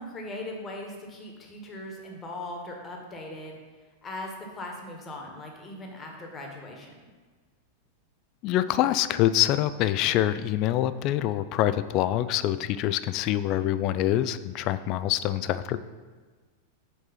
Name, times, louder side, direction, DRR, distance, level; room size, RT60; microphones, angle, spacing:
voice 1, 0.0-3.6 4.0-7.1, left 1 dB, 20° left, 1 dB, 1.3 m, -39 dB
voice 2, 8.4-15.8, left 13 dB, 40° left, 14 dB, 0.3 m, -25 dB
5.4 x 4.6 x 5.7 m, 1.4 s
figure-of-eight pair, 90°, 0 cm